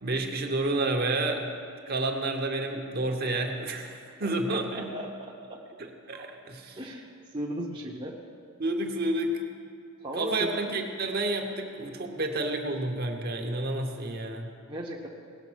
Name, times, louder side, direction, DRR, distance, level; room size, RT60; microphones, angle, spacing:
voice 1, 0.0-1.4 1.9-4.9 5.8-6.8 8.6-9.3 10.1-14.5, right 2 dB, 45° right, 3 dB, 0.9 m, -30 dB
voice 2, 3.8-5.6 6.1-6.4 6.8-8.2 10.0-10.5 14.7-15.1, right 1 dB, 20° right, -2 dB, 0.8 m, -37 dB
17.5 x 6.6 x 6.2 m, 2.3 s
head